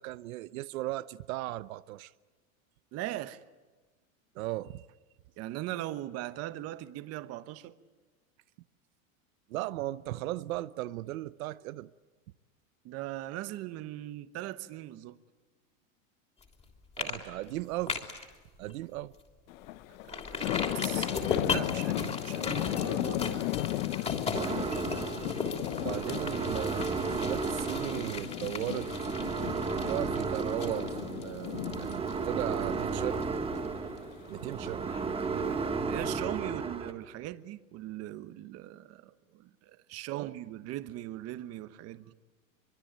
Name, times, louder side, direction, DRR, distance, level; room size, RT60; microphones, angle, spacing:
voice 1, 0.0-2.1 4.3-4.8 9.5-11.9 17.0-18.0 18.6-19.1 25.8-28.9 29.7-33.3 34.3-34.8 40.1-40.3, right 16 dB, 75° right, 0.9 m, -37 dB
voice 2, 2.9-3.4 5.4-7.8 12.8-15.2 20.0-23.4 35.3-35.5 35.8-42.1, right 15 dB, 35° right, 1.2 m, -40 dB
sound 1, 16.4-16.6 17.0-17.2 17.5-18.3 18.7-18.8 19.2-19.3 20.1-33.7 34.0-34.1, left 4 dB, 15° left, 3.3 m, -38 dB
sound 2, 19.5-35.8, left 15 dB, 75° left, 1.2 m, -36 dB
sound 3, 24.4-36.9, right 4 dB, 15° right, 1.6 m, -34 dB
25.0 x 23.5 x 9.0 m
supercardioid pair, 155°, 41 cm